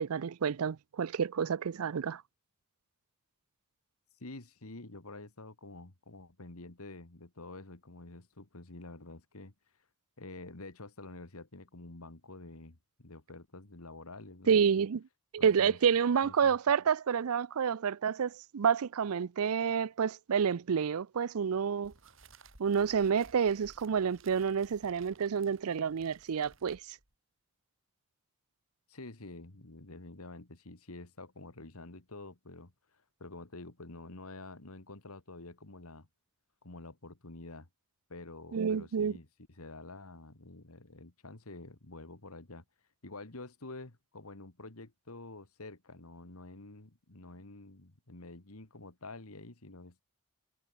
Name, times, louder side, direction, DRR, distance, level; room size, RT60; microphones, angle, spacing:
voice 1, 0.0-2.2 14.5-15.0 15.3-21.9 22.6-27.0 38.5-39.1, right 7 dB, 80° right, 0.5 m, -29 dB
voice 2, 4.2-9.5 10.2-14.7 15.4-15.8 16.2-16.6 28.9-32.7 33.2-36.1 36.6-37.7 38.1-42.6 43.0-50.0, left 2 dB, 80° left, 2.2 m, -48 dB
sound 1, 21.8-27.1, right 4 dB, 60° right, 6.1 m, -59 dB
head